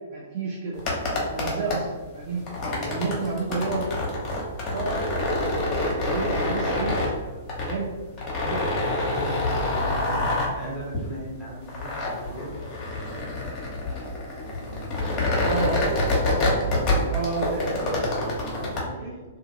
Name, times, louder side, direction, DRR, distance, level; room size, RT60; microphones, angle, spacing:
voice 1, 0.1-1.9 2.1-2.4 2.9-3.8 4.7-7.9 8.3-8.6 15.4-15.7 17.1-17.6 19.0-19.1, right 4 dB, 50° right, -3 dB, 0.6 m, -31 dB
sound 1, 0.7-18.8, left 1 dB, 30° left, 0.9 m, -27 dB
voice 2, 2.5-3.4 9.2-12.7 14.4-15.8 16.4-17.1 17.3-19.2, right 1 dB, 15° right, -6 dB, 1.2 m, -39 dB
2.5 x 2.4 x 2.7 m, 1.3 s
hypercardioid pair, 115°, 0 cm